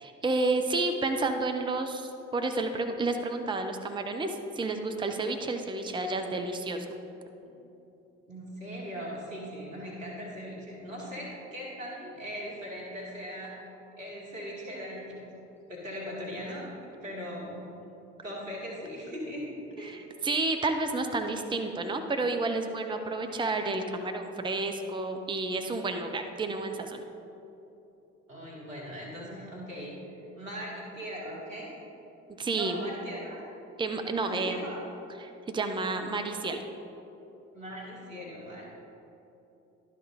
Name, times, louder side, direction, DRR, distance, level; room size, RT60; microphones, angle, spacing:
voice 1, 0.0-6.8 19.8-27.0 32.4-32.8 33.8-34.6 35.2-36.6, right 3 dB, 15° right, 6 dB, 0.6 m, -30 dB
voice 2, 8.3-13.5 14.0-15.3 15.7-16.6 17.0-17.6 18.2-20.1 28.3-31.8 32.5-33.4 34.2-34.8 37.5-38.7, equal, 90° right, -5 dB, 1.5 m, -39 dB
11.5 x 4.1 x 4.9 m, 3.0 s
figure-of-eight pair, 45°, 38 cm